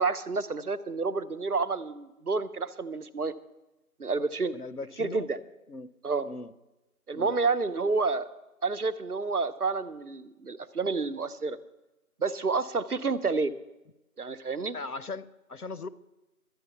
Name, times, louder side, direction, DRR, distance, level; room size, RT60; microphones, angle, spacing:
voice 1, 0.0-3.3 4.0-4.5 5.0-5.4 6.0-6.3 7.1-8.3 8.6-11.6 12.2-13.5 14.2-14.8, right 4 dB, 75° right, 13 dB, 0.9 m, -29 dB
voice 2, 4.5-5.3 5.7-5.9 6.2-6.5 7.1-7.3 14.7-15.9, left 3 dB, 75° left, 15 dB, 0.9 m, -39 dB
12.5 x 9.2 x 6.9 m, 1.0 s
figure-of-eight pair, 180°, 45 cm